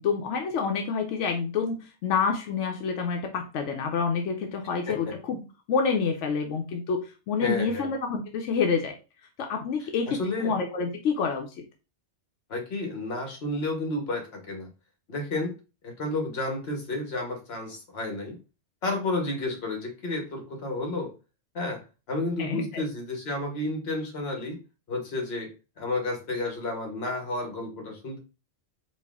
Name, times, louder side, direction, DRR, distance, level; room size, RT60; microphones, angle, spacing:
voice 1, 0.0-5.4 5.7-8.9 9.4-11.5 22.4-22.8, left 5 dB, 85° left, 4 dB, 0.9 m, -28 dB
voice 2, 7.4-7.9 10.1-10.5 12.5-14.7 15.1-15.5 15.8-18.4 18.8-21.1 21.5-21.8 22.1-24.6 24.9-28.2, left 2 dB, 60° left, 3 dB, 1.2 m, -31 dB
4.1 x 2.4 x 3.5 m, 0.31 s
omnidirectional pair, 1.2 m